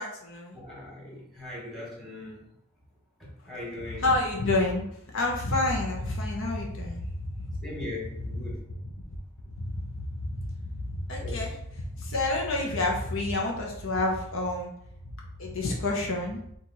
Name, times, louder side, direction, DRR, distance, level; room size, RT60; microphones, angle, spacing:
voice 1, 0.0-0.6 3.9-7.6 9.6-10.6 10.9-14.7 15.4-16.4, left 2 dB, 65° left, -1 dB, 0.8 m, -29 dB
voice 2, 0.5-2.4 3.5-4.1 7.6-8.5 11.2-11.4, left 2 dB, ahead, -5 dB, 1.6 m, -39 dB
4.6 x 2.5 x 4.1 m, 0.73 s
head